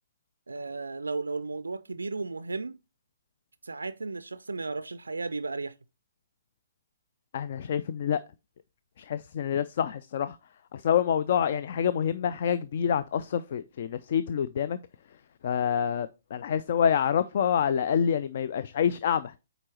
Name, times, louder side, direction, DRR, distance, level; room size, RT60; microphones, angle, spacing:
voice 1, 0.5-2.8 3.6-5.7, right 3 dB, 75° right, 0.3 m, -34 dB
voice 2, 7.3-8.2 9.0-10.4 10.7-14.8 15.4-19.3, left 8 dB, 45° left, 0.3 m, -27 dB
8.8 x 4.0 x 2.9 m
figure-of-eight pair, 125°, 0 cm